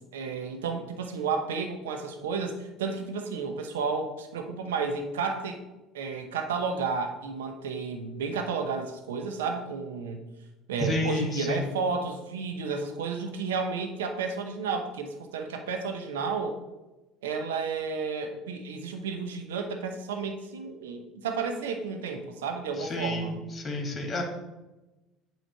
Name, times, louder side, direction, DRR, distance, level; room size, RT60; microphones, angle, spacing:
voice 1, 0.1-5.6 5.9-10.2 10.7-16.6 17.2-23.3, right 5 dB, 75° right, 5 dB, 0.9 m, -32 dB
voice 2, 10.8-11.7 22.8-24.2, left 2 dB, 25° left, 2 dB, 1.9 m, -30 dB
8.6 x 3.1 x 6.5 m, 1.1 s
hypercardioid pair, 65°, 0 cm